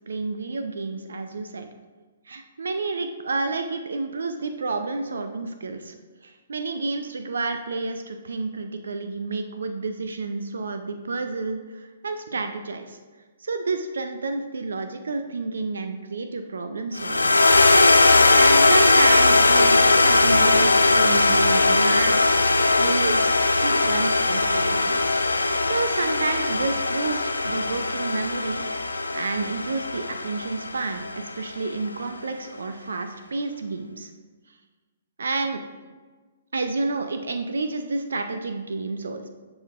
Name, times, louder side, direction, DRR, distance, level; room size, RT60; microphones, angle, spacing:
voice 1, 0.1-1.7 2.3-5.9 6.2-13.0 13.4-17.5 18.3-22.4 22.8-25.2 25.6-28.6 29.1-34.1 35.2-35.6 36.5-39.3, right 3 dB, 70° right, 7 dB, 0.5 m, -30 dB
sound 1, 17.0-31.4, left 3 dB, 85° left, 0.4 m, -19 dB
10.0 x 4.9 x 2.5 m, 1.3 s
figure-of-eight pair, 125°, 0 cm